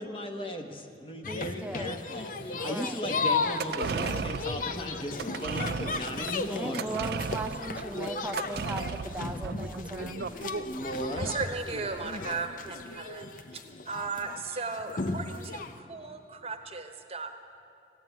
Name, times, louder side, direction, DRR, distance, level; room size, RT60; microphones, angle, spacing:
voice 1, 0.0-6.9 10.6-11.3, equal, 30° left, 5 dB, 1.0 m, -37 dB
sound 1, 1.2-15.8, left 4 dB, 50° left, 0.5 m, -35 dB
voice 2, 1.3-2.0 2.5-3.0 6.5-10.2, right 1 dB, 10° right, 3 dB, 0.7 m, -38 dB
sound 2, 3.4-12.0 12.3-12.4, right 5 dB, 60° right, 0.4 m, -36 dB
voice 3, 11.2-13.3 13.8-17.4, right 4 dB, 35° right, 6 dB, 0.9 m, -36 dB
15.5 x 9.2 x 9.0 m, 2.6 s
head